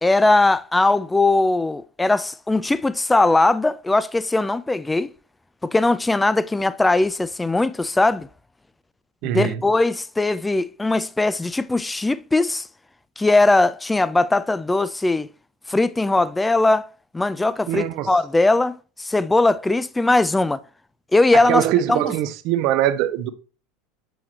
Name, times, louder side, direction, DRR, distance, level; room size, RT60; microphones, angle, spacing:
voice 1, 0.0-5.1 5.6-8.3 9.3-12.7 13.2-15.3 15.7-16.8 17.1-20.6 21.1-21.6 21.9-22.0, left 2 dB, 10° left, 0.4 m, -19 dB
voice 2, 9.2-9.6 17.7-18.1 21.3-23.3, right 12 dB, 55° right, 0.7 m, -22 dB
7.7 x 4.7 x 2.9 m
hypercardioid pair, 80°, 0 cm